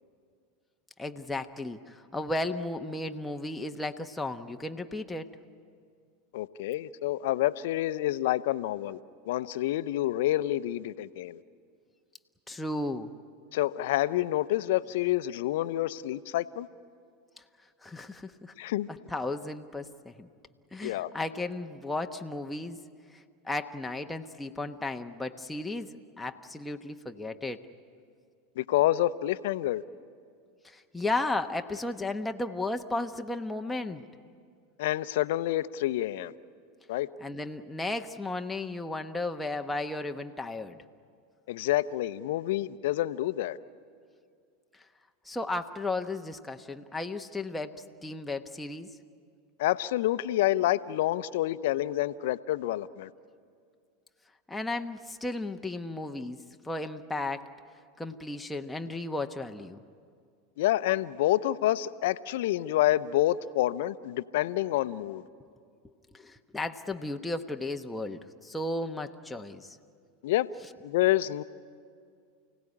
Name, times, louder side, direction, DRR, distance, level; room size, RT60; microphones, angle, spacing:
voice 1, 1.0-5.3 12.5-13.1 17.8-18.5 18.9-20.3 20.7-22.8 23.1-27.6 30.6-34.0 37.2-40.8 45.2-48.9 54.5-56.4 56.6-57.5 58.0-59.8 66.1-69.8, left 2 dB, 10° left, 4 dB, 1.0 m, -34 dB
voice 2, 6.3-9.0 9.3-11.4 13.5-16.7 18.6-18.9 20.8-21.1 28.6-29.8 34.8-36.3 36.9-37.1 41.5-43.6 49.6-53.1 60.6-65.2 70.2-70.5 70.8-71.4, left 14 dB, 70° left, 14 dB, 0.7 m, -28 dB
29.0 x 17.0 x 9.8 m, 2.2 s
hypercardioid pair, 90°, 0 cm